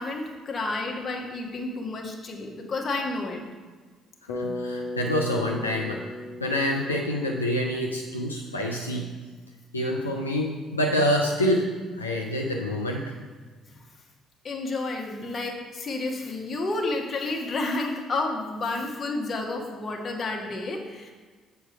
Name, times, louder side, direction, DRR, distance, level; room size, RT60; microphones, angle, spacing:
voice 1, 0.0-3.4 14.4-21.1, left 2 dB, 40° left, 1 dB, 1.3 m, -30 dB
voice 2, 4.3-6.0 6.4-9.1 9.7-13.0, equal, 90° left, 0 dB, 0.4 m, -27 dB
Bass guitar, 4.3-8.4, left 1 dB, 65° left, 0.8 m, -36 dB
7.7 x 4.6 x 5.1 m, 1.4 s
figure-of-eight pair, 45°, 0 cm